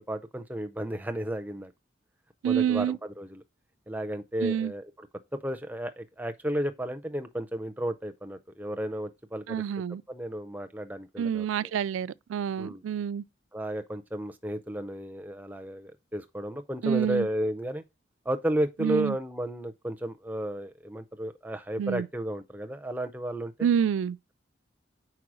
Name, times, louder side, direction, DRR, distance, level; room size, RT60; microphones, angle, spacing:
voice 1, 0.0-1.7 2.4-3.4 3.9-5.1 5.3-9.6 10.1-11.7 12.6-12.8 13.5-17.8 18.3-23.7, right 1 dB, 10° right, 0.5 m, -33 dB
voice 2, 2.4-3.0 4.4-4.7 9.5-10.0 11.2-13.2 16.8-17.3 18.8-19.2 21.8-22.1 23.6-24.2, right 8 dB, 90° right, 0.3 m, -27 dB
4.8 x 4.5 x 6.1 m
head